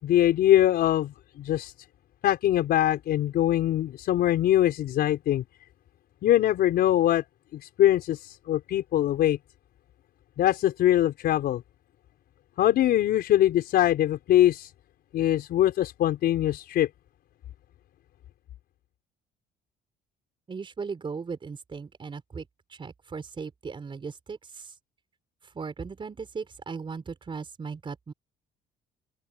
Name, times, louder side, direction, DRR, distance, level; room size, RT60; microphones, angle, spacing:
voice 1, 0.0-1.7 2.2-5.4 6.2-7.2 7.5-9.4 10.4-11.6 12.6-14.7 15.1-16.9, left 12 dB, 70° left, 4.9 m, -23 dB
voice 2, 20.5-22.4 22.8-24.4 25.5-28.1, right 5 dB, 30° right, 4.9 m, -37 dB
open air
cardioid pair, 110°, 17 cm